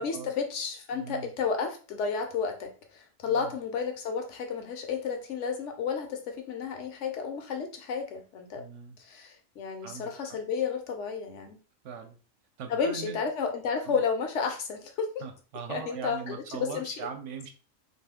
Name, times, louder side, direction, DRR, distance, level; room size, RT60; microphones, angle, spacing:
voice 1, 0.0-8.7 9.0-11.6 12.7-15.1 15.7-17.1, left 5 dB, 70° left, 0.9 m, -32 dB
voice 2, 0.9-1.3 3.3-3.5 8.6-9.0 9.8-10.1 11.8-12.2 12.6-13.2 13.8-14.0 15.2-17.5, right 6 dB, 70° right, 0.9 m, -40 dB
2.6 x 2.6 x 3.4 m
omnidirectional pair, 1.3 m